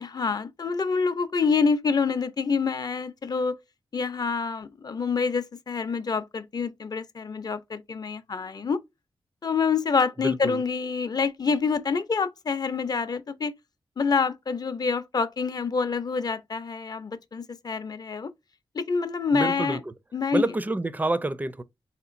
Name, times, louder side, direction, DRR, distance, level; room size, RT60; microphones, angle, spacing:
voice 1, 0.0-3.6 3.9-8.8 9.4-13.5 14.0-18.3 18.7-19.8 20.1-20.5, left 5 dB, 45° left, 0.5 m, -27 dB
voice 2, 10.2-10.6 19.3-19.9 20.3-21.6, right 2 dB, 20° right, 0.4 m, -28 dB
3.8 x 2.9 x 2.5 m
cardioid pair, 65°, 9 cm